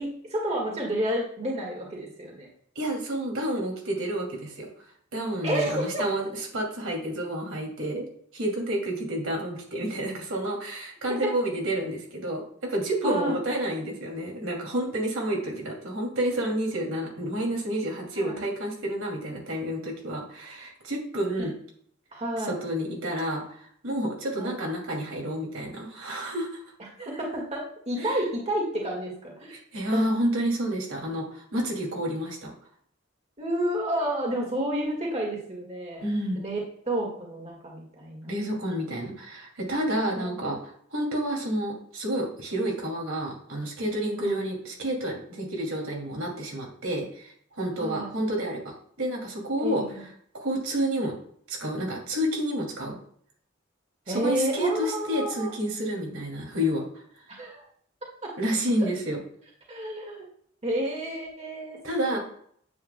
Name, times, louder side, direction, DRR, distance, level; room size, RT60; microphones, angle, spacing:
voice 1, 0.0-2.5 5.4-6.0 13.0-13.4 18.1-18.4 21.4-21.5 22.1-22.5 24.3-24.5 27.0-29.6 29.9-30.0 33.4-36.0 36.3-36.6 36.8-38.3 40.2-40.4 44.2-44.4 47.8-48.1 49.6-50.0 54.1-55.5 57.4-57.6 58.2-58.3 59.7-60.2 60.6-61.8 62.1-62.2, right 1 dB, 30° right, -1 dB, 1.9 m, -30 dB
voice 2, 2.7-4.7 5.1-6.3 6.5-8.1 8.3-21.5 22.5-26.6 28.0-28.2 29.7-32.5 36.0-36.4 38.2-49.8 50.3-51.1 51.5-53.0 54.1-56.8 58.4-59.2 61.8-62.2, right 1 dB, 80° right, -1 dB, 2.6 m, -29 dB
9.4 x 8.1 x 2.2 m, 0.63 s
head